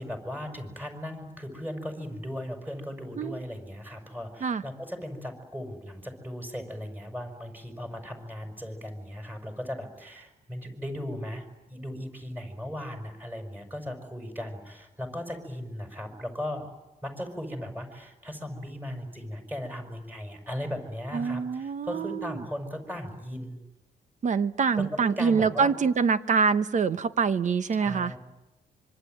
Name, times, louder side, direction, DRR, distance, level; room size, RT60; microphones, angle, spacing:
voice 1, 0.0-16.7 17.0-23.5 24.8-25.7 27.7-28.2, left 1 dB, 10° right, 5 dB, 5.8 m, -37 dB
voice 2, 21.1-22.4 24.2-28.1, right 5 dB, 45° right, 13 dB, 1.0 m, -25 dB
25.5 x 24.5 x 9.2 m, 0.99 s
cardioid pair, 115°, 17 cm